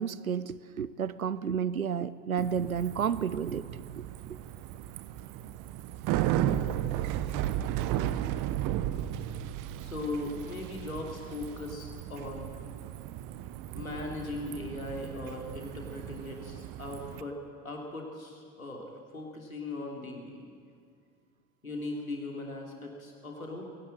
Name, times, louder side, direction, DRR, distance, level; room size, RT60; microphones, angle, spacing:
voice 1, 0.0-3.6 4.0-4.1, right 7 dB, 85° right, 17 dB, 0.7 m, -31 dB
Bicycle, 2.4-17.2, right 12 dB, 50° right, 1.0 m, -35 dB
voice 2, 9.8-12.5 13.7-17.4 17.6-20.5 21.6-23.7, left 2 dB, 85° left, 0 dB, 3.2 m, -39 dB
20.5 x 17.5 x 8.9 m, 2.2 s
figure-of-eight pair, 65°, 41 cm